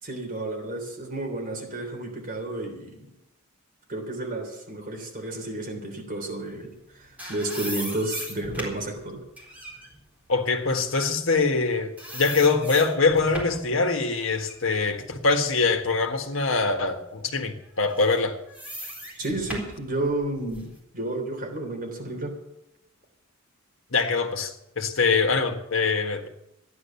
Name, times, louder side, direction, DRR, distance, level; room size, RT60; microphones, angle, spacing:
voice 1, 0.0-3.1 3.9-9.2 19.2-22.4, right 2 dB, 40° right, 3.3 m, -31 dB
sound 1, 6.8-11.7 12.0-13.7 14.2-16.1 16.6-16.7 17.8-20.8, equal, 5° right, 4.0 m, -38 dB
voice 2, 10.3-18.4 23.9-26.3, left 4 dB, 65° left, 1.6 m, -23 dB
13.5 x 11.0 x 7.0 m
head